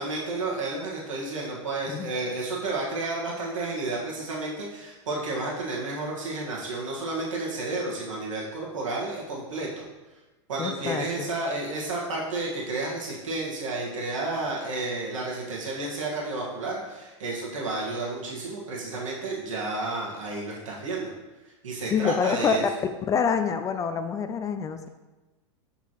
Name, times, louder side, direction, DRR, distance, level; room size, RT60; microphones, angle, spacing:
voice 1, 0.0-9.8 10.5-21.1 21.6-22.6, right 2 dB, 90° right, -4 dB, 1.6 m, -31 dB
voice 2, 10.6-11.3 21.9-22.6 23.1-24.8, left 6 dB, 20° left, 9 dB, 0.4 m, -26 dB
7.2 x 5.6 x 3.0 m, 1.1 s
hypercardioid pair, 115°, 16 cm